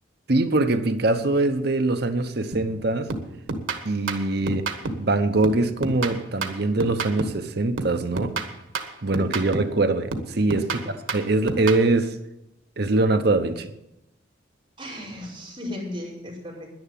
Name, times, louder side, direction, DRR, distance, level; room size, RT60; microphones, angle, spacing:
voice 1, 0.3-3.1 3.8-4.7 5.0-8.3 9.0-10.8 11.1-12.2 12.8-13.7, right 2 dB, 50° right, 8 dB, 0.9 m, -23 dB
sound 1, 2.5-2.8 3.1-5.1 5.4-7.5 7.8-9.8 10.1-11.9, right 3 dB, 85° right, 1.5 m, -30 dB
voice 2, 10.6-10.9 14.8-16.7, left 1 dB, 25° right, -6 dB, 4.9 m, -36 dB
10.5 x 10.5 x 7.5 m, 0.88 s
head